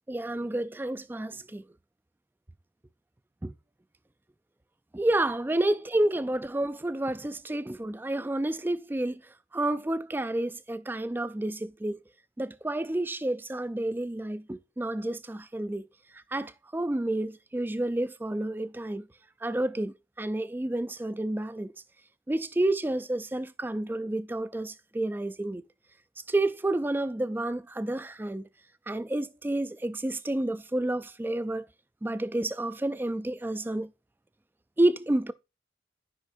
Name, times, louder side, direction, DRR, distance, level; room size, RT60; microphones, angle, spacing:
voice 1, 0.1-1.6 3.4-3.5 4.9-9.2 9.5-12.0 12.4-15.9 16.3-19.1 19.4-21.7 22.3-25.6 26.3-28.4 28.9-31.6 32.0-33.9 34.8-35.3, right 1 dB, 10° right, 0.3 m, -30 dB
10.0 x 5.3 x 2.6 m
head